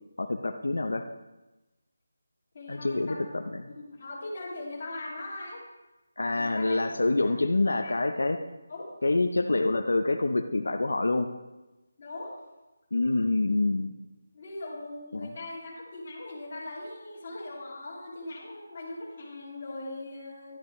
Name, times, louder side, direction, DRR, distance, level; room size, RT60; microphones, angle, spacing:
voice 1, 0.2-1.1 2.7-3.6 6.2-8.4 9.0-11.3 12.9-13.9 15.1-15.3, left 2 dB, 90° left, 6 dB, 0.7 m, -26 dB
voice 2, 2.5-3.2 3.7-5.6 6.3-6.8 7.2-8.0 8.7-8.9 12.0-12.4 14.3-20.6, left 2 dB, 30° left, -5 dB, 2.6 m, -40 dB
11.5 x 11.0 x 3.2 m, 1.0 s
figure-of-eight pair, 175°, 0 cm